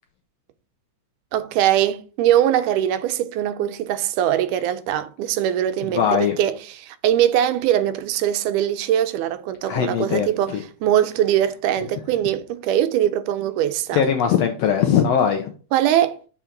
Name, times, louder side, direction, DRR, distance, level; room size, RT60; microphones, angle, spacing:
voice 1, 1.3-14.0 15.7-16.2, right 11 dB, 85° right, 2.2 m, -21 dB
voice 2, 5.9-6.4 9.7-10.6 13.9-15.5, left 8 dB, 80° left, 1.5 m, -20 dB
6.9 x 4.4 x 3.8 m
omnidirectional pair, 3.6 m